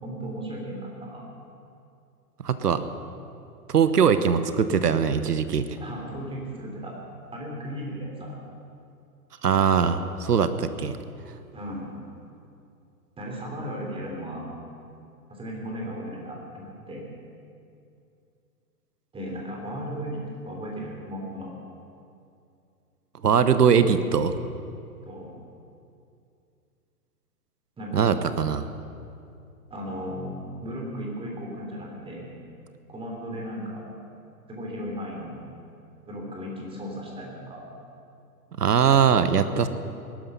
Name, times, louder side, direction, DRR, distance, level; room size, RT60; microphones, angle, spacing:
voice 1, 0.0-1.3 5.8-6.9 7.3-8.4 11.5-11.9 13.2-14.5 15.3-17.0 19.1-21.5 25.0-25.3 27.8-28.1 29.7-32.3 32.9-33.8 34.5-35.4 36.1-37.7, equal, 10° right, -1 dB, 3.3 m, -36 dB
voice 2, 2.4-2.8 3.7-5.7 9.4-11.0 23.2-24.4 27.9-28.7 38.6-39.7, right 7 dB, 85° right, 12 dB, 1.1 m, -21 dB
19.5 x 12.0 x 5.6 m, 2.5 s
hypercardioid pair, 130°, 46 cm